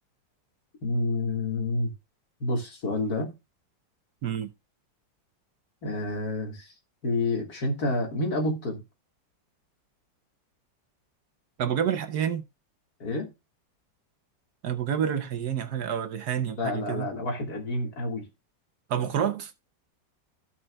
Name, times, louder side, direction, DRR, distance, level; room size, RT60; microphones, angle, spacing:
voice 1, 0.8-1.9 2.4-3.3 5.8-6.7 7.0-8.8 13.0-13.3 16.6-18.2, left 2 dB, 55° left, 2.3 m, -29 dB
voice 2, 11.6-12.4 14.6-17.1 18.9-19.5, right 9 dB, 65° right, 1.2 m, -28 dB
15.5 x 5.5 x 2.3 m
omnidirectional pair, 2.0 m